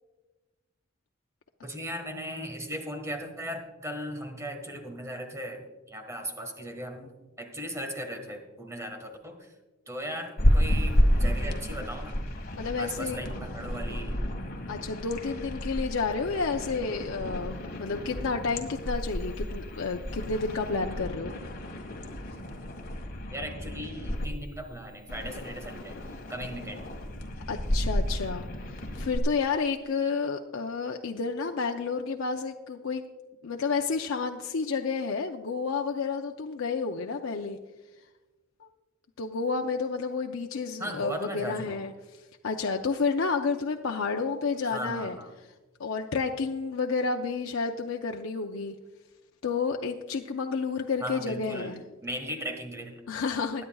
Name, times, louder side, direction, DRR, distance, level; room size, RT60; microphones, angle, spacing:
voice 1, 1.6-7.1 7.4-9.5 9.9-12.2 12.8-14.2 23.3-26.0 26.3-26.9 40.8-41.8 44.6-45.3 51.0-53.0, equal, 15° right, 5 dB, 1.6 m, -37 dB
sound 1, 10.4-24.3 25.1-29.2, equal, 50° left, 1.7 m, -31 dB
voice 2, 12.6-13.2 14.7-21.3 27.5-33.0 33.4-37.6 39.2-41.9 42.4-45.2 45.8-48.7 49.4-51.8 53.1-53.6, left 4 dB, 80° left, 3 dB, 0.6 m, -30 dB
21.5 x 9.9 x 2.3 m, 1.2 s
head